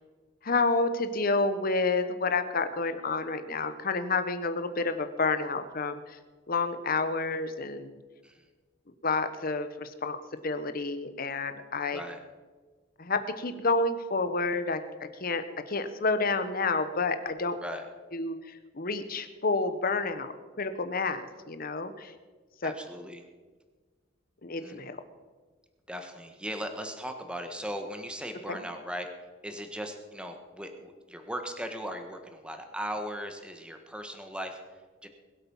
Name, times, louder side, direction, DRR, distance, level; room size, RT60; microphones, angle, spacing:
voice 1, 0.4-6.2 6.5-7.9 9.0-10.2 10.4-12.0 13.0-17.6 18.1-22.1 22.6-22.7 24.4-25.0 28.5-28.6, left 3 dB, 50° left, 10 dB, 1.1 m, -29 dB
voice 2, 22.6-23.2 24.6-24.8 25.9-35.1, equal, 5° right, 5 dB, 1.5 m, -38 dB
21.5 x 8.3 x 5.6 m, 1.4 s
head